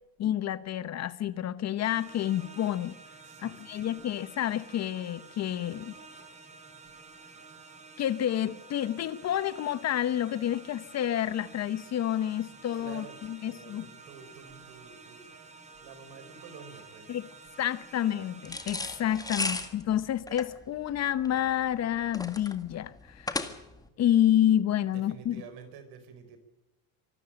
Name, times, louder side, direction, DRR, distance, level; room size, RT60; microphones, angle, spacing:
voice 1, 0.2-3.0 3.4-5.9 8.0-13.9 17.1-17.3 17.6-23.5 24.0-25.4, left 11 dB, 40° left, 1.0 m, -29 dB
sound 1, 1.8-19.7, right 4 dB, 15° right, 4.3 m, -51 dB
voice 2, 3.2-4.0 12.7-15.3 15.5-17.2 19.3-19.5 24.9-26.4, right 6 dB, 70° right, 4.8 m, -50 dB
sound 2, 18.5-23.9, left 2 dB, 10° left, 1.8 m, -35 dB
25.0 x 13.0 x 8.8 m
cardioid pair, 120°, 39 cm